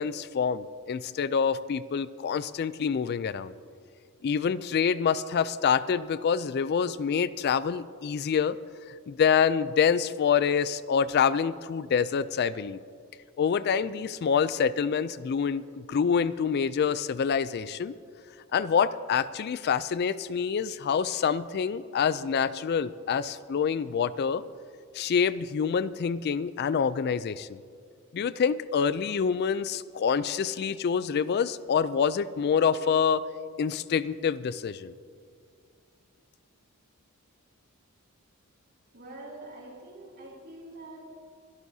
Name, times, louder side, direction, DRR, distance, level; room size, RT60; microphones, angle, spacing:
voice 1, 0.0-3.5 4.2-8.6 9.1-12.8 13.4-17.9 18.5-24.4 24.9-27.6 28.1-33.2 33.6-34.9, left 6 dB, 45° left, 16 dB, 0.3 m, -26 dB
voice 2, 38.9-41.0, right 2 dB, 55° right, -7 dB, 3.6 m, -45 dB
25.5 x 12.0 x 2.7 m, 2.2 s
head